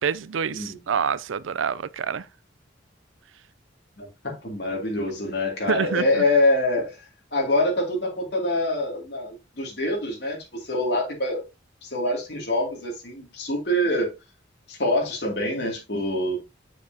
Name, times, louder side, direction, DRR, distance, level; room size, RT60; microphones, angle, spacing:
voice 1, 0.0-2.3 5.7-6.2, right 7 dB, 80° right, 0.4 m, -27 dB
voice 2, 4.0-7.0 7.3-11.4 11.8-14.1 14.7-16.4, left 1 dB, 55° left, 2.5 m, -25 dB
7.3 x 7.0 x 2.8 m
head